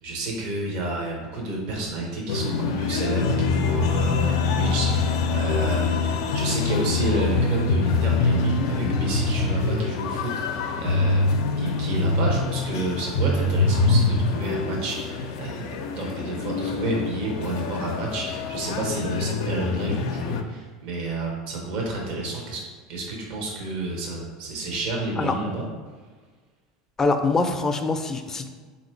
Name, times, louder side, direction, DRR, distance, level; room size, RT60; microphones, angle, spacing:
voice 1, 0.0-22.6 22.9-25.6, right 2 dB, 60° right, -1 dB, 1.1 m, -30 dB
sound 1, 2.3-20.4, left 3 dB, 75° left, 0.4 m, -24 dB
voice 2, 27.0-28.5, left 3 dB, 20° left, 6 dB, 0.5 m, -24 dB
3.8 x 2.8 x 4.5 m, 1.5 s
supercardioid pair, 100°, 2 cm